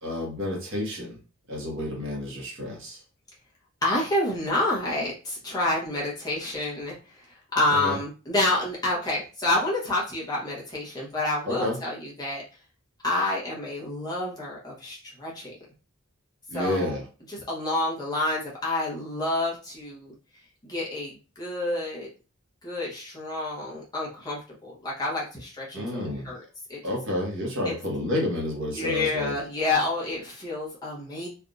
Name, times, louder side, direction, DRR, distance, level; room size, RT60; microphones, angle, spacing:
voice 1, 0.0-1.2 1.5-3.0 7.7-8.0 11.4-11.8 16.5-17.0 25.7-26.3 26.8-29.3, left 1 dB, 60° right, -2 dB, 1.1 m, -30 dB
voice 2, 3.8-12.4 13.0-15.6 16.5-17.0 17.3-20.1 20.6-22.1 22.6-26.4 26.7-26.8 27.6-27.7 28.7-31.3, left 2 dB, 20° left, -5 dB, 1.0 m, -28 dB
3.4 x 2.4 x 2.5 m, 0.34 s
head